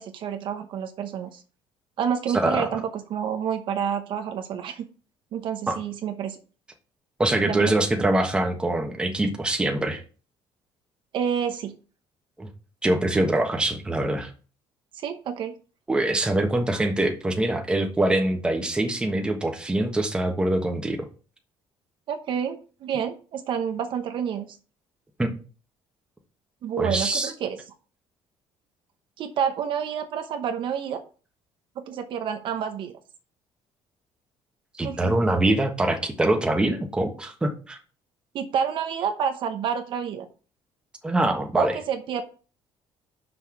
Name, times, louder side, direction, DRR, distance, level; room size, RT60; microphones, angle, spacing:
voice 1, 0.0-1.4 2.0-4.8 5.3-6.4 7.5-7.7 11.1-11.7 14.9-15.5 22.1-24.5 26.6-27.6 29.2-31.0 31.8-32.9 34.8-35.1 38.3-40.3 41.5-42.2, right 8 dB, 50° right, 7 dB, 0.9 m, -29 dB
voice 2, 2.3-2.7 5.7-5.8 7.2-10.0 12.4-12.5 12.8-14.3 15.9-21.0 25.2-25.3 26.8-27.3 34.8-37.8 41.0-41.8, right 1 dB, 10° right, 3 dB, 1.2 m, -24 dB
6.1 x 5.3 x 6.4 m, 0.37 s
cardioid pair, 160°, 10 cm